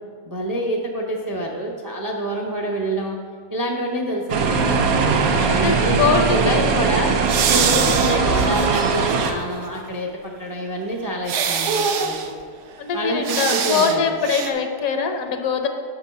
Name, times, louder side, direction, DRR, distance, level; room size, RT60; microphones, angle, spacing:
voice 1, 0.2-3.2 3.5-4.8 5.3-7.1 7.5-12.3 12.9-14.1, right 1 dB, 35° right, 1 dB, 0.3 m, -27 dB
sound 1, 4.3-9.3, right 4 dB, 85° right, 1.2 m, -20 dB
voice 2, 5.5-6.6 7.5-7.7 12.8-15.7, left 5 dB, 80° left, 6 dB, 1.1 m, -22 dB
sound 2, 7.3-9.3 9.7-9.8 11.3-12.3 13.2-14.0 14.2-14.5, right 6 dB, 65° right, 0.9 m, -23 dB
6.9 x 4.6 x 5.4 m, 2.2 s
omnidirectional pair, 1.5 m